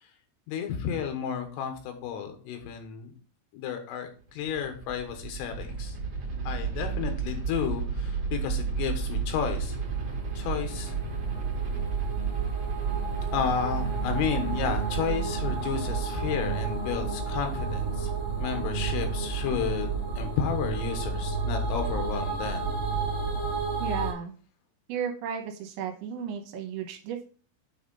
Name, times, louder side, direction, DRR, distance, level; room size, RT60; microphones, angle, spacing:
voice 1, 0.5-3.1 3.5-6.0 6.5-9.8 10.4-10.9 13.3-18.1 18.4-22.8, left 7 dB, 90° left, 6 dB, 3.9 m, -32 dB
sound 1, 4.2-23.6, right 5 dB, 45° right, 2.3 m, -32 dB
sound 2, 9.2-24.1, right 4 dB, 25° left, 1.2 m, -34 dB
voice 2, 23.8-24.3 24.9-27.3, right 8 dB, 75° right, 3 dB, 3.2 m, -34 dB
9.2 x 3.6 x 5.4 m, 0.41 s
omnidirectional pair, 5.6 m